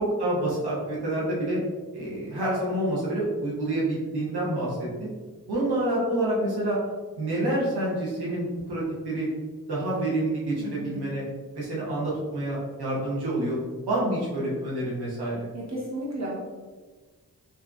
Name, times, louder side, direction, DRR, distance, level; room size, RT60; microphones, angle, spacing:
voice 1, 0.0-1.6 1.9-5.1 5.5-6.8 7.2-9.3 9.7-10.5 10.8-11.2 11.5-13.6 13.9-15.4, right 1 dB, 85° right, -7 dB, 1.0 m, -27 dB
voice 2, 10.6-11.0 15.5-16.4, right 1 dB, 45° right, -5 dB, 1.1 m, -34 dB
3.4 x 2.7 x 2.5 m, 1.4 s
cardioid pair, 45°, 38 cm